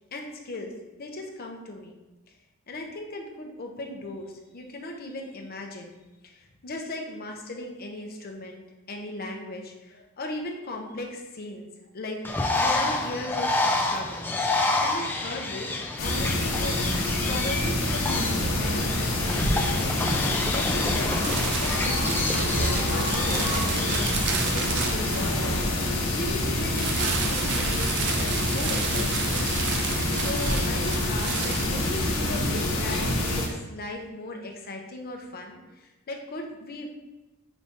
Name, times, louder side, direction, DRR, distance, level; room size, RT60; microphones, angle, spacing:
voice 1, 0.1-0.7 1.0-2.0 2.7-11.7 11.9-12.2 12.5-14.3 14.8-16.8 17.3-20.1 20.5-25.9 26.1-29.4 30.1-36.9, left 2 dB, 45° left, 2 dB, 0.6 m, -37 dB
Bird, 12.2-24.2, left 2 dB, 10° left, 0.3 m, -29 dB
sound 1, 16.0-33.5, left 1 dB, 75° left, 0.9 m, -26 dB
sound 2, 21.2-25.8 26.7-32.3, right 5 dB, 55° right, 0.5 m, -32 dB
5.0 x 2.7 x 3.5 m, 1.1 s
head